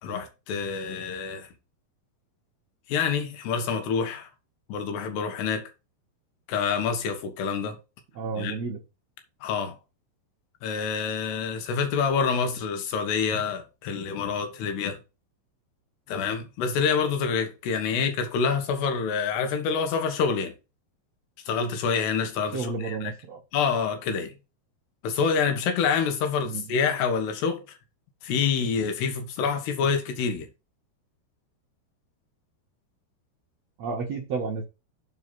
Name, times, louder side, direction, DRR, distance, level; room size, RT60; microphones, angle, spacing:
voice 1, 0.0-1.5 2.9-4.3 4.7-5.7 6.5-7.8 8.4-8.6 9.4-9.8 10.6-15.0 16.1-20.5 21.5-23.1 23.5-24.3 25.0-27.7 28.2-30.5, left 6 dB, 75° left, 3.5 m, -27 dB
voice 2, 8.1-8.8 17.9-18.0 22.5-23.4 26.4-26.8 33.8-34.6, right 4 dB, 75° right, 1.5 m, -32 dB
7.6 x 4.8 x 5.7 m
omnidirectional pair, 4.9 m